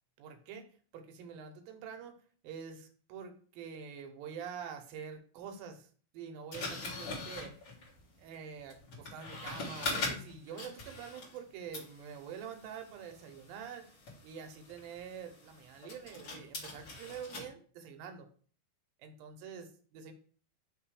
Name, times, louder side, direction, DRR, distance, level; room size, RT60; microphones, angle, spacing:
voice 1, 0.2-0.7 0.9-2.2 2.4-5.9 6.1-7.6 8.2-13.9 14.2-18.3 19.0-20.1, right 7 dB, 75° right, 4 dB, 2.3 m, -46 dB
sound 1, 6.5-11.5 11.7-17.5, left 3 dB, 40° left, 2.2 m, -42 dB
5.9 x 3.5 x 4.8 m, 0.43 s
omnidirectional pair, 4.7 m